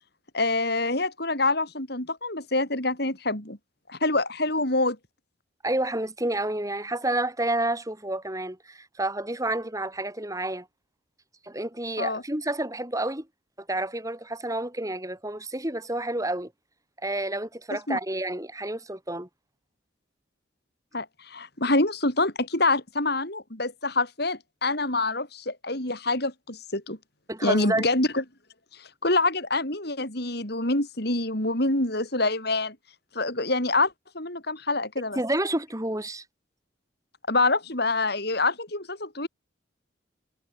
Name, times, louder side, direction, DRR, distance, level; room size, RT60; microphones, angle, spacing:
voice 1, 0.3-3.6 3.9-5.0 12.0-12.2 17.7-18.0 20.9-27.0 27.4-28.2 29.0-32.8 33.1-35.2 37.3-39.3, left 2 dB, 55° left, 7.6 m, -26 dB
voice 2, 5.6-10.7 11.4-13.3 13.6-16.5 17.0-19.3 27.3-27.8 35.1-36.2, right 1 dB, 15° right, 5.0 m, -29 dB
head